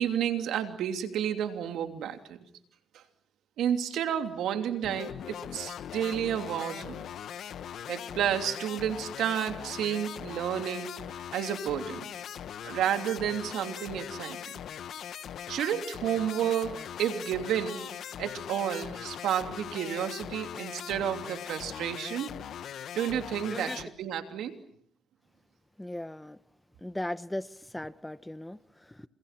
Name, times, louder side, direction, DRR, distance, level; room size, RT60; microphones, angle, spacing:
voice 1, 0.0-2.4 2.9-3.0 3.6-7.1 7.9-10.9 11.3-12.2 12.6-14.6 15.5-22.3 22.9-24.5, right 9 dB, 80° right, 2.9 m, -31 dB
sound 1, 4.8-23.8, left 9 dB, 65° left, 1.2 m, -40 dB
voice 2, 25.8-26.4 26.8-29.1, left 1 dB, 10° left, 1.0 m, -38 dB
30.0 x 28.0 x 6.0 m
cardioid pair, 90°, 0 cm